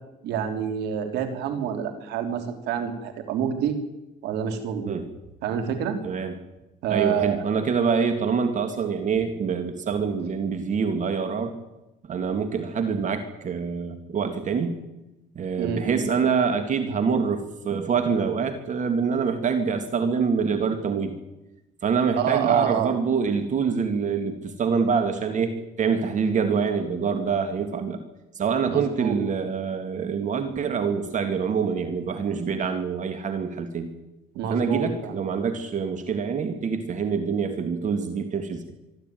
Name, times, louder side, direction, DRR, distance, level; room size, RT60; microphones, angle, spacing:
voice 1, 0.2-3.7 4.2-4.9 5.4-6.0 6.8-7.4 15.6-16.1 22.2-22.9 28.7-29.2 34.3-35.2, right 8 dB, 80° right, 7 dB, 3.5 m, -27 dB
voice 2, 6.0-6.3 6.9-11.6 12.1-14.8 15.4-21.1 21.8-28.0 28.3-33.9 34.5-38.6, right 6 dB, 45° right, 8 dB, 2.3 m, -25 dB
24.5 x 13.0 x 9.3 m, 0.98 s
cardioid pair, 110°, 17 cm